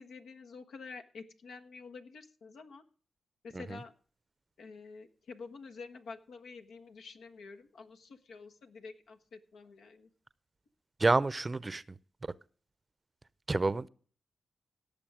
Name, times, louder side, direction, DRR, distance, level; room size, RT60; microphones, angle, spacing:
voice 1, 0.0-2.8 3.4-3.9 4.6-10.1, left 4 dB, 80° left, 1.4 m, -49 dB
voice 2, 11.0-11.8 13.5-13.9, right 3 dB, 30° right, 0.7 m, -28 dB
17.5 x 6.9 x 4.9 m
cardioid pair, 55°, 0 cm